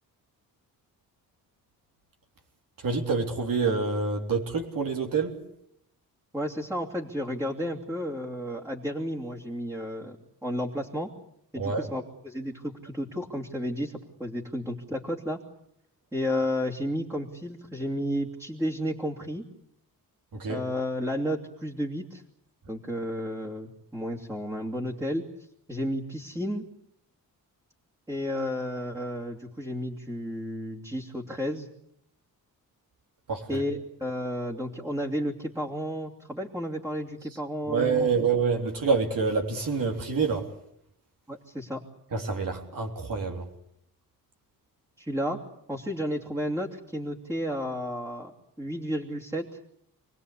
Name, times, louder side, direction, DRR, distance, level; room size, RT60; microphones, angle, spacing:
voice 1, 2.8-5.3 11.6-11.9 20.3-20.6 33.3-33.6 37.7-40.5 42.1-43.5, right 5 dB, 60° right, 2 dB, 3.6 m, -27 dB
voice 2, 6.3-10.2 10.4-11.1 11.5-15.4 16.1-19.4 20.5-22.2 22.7-25.3 25.7-26.6 28.1-31.7 33.5-38.1 41.3-41.8 45.0-45.4 45.7-48.3 48.6-49.6, equal, 10° right, -3 dB, 2.8 m, -32 dB
28.5 x 20.0 x 8.5 m, 0.73 s
wide cardioid pair, 130°, 37 cm